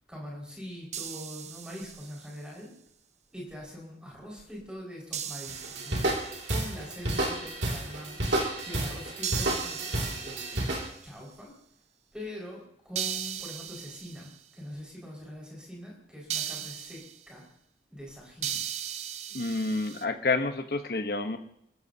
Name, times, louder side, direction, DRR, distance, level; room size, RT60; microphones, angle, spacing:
voice 1, 0.1-2.7 3.3-6.1 6.5-8.2 8.6-11.5 12.1-17.4 17.9-18.6, equal, 5° right, -3 dB, 5.2 m, -43 dB
sound 1, 0.9-2.4 5.1-6.7 9.2-11.1 13.0-14.4 16.3-17.2 18.4-20.0, right 9 dB, 40° right, 0.6 m, -37 dB
sound 2, 5.5-10.9, right 1 dB, 85° right, 2.4 m, -31 dB
voice 2, 19.3-21.4, left 3 dB, 60° left, 7 dB, 1.0 m, -29 dB
28.5 x 14.5 x 2.8 m, 0.70 s
head